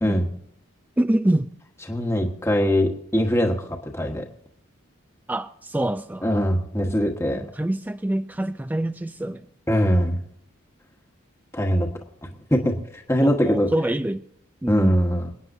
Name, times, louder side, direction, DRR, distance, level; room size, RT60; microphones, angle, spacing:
voice 1, 1.0-1.5 5.3-6.3 6.8-6.9 7.3-9.5 13.2-14.2 14.6-15.0, right 1 dB, 10° right, 0.4 m, -25 dB
voice 2, 1.9-4.3 6.2-7.4 9.7-10.2 11.5-11.9 12.5-13.7 14.7-15.3, equal, 15° left, 1.3 m, -22 dB
27.5 x 9.4 x 2.7 m
head